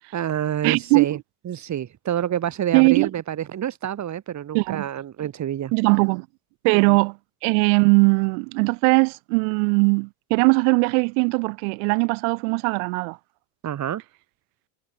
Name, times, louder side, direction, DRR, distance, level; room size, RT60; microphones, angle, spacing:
voice 1, 0.1-1.2 1.5-5.7 6.7-7.0 13.6-14.0, right 10 dB, 40° right, 7.3 m, -28 dB
voice 2, 0.6-1.0 2.7-3.1 4.5-4.8 5.7-6.3 6.6-13.2, right 40 dB or more, 65° right, 4.9 m, -20 dB
hypercardioid pair, 95°, 44 cm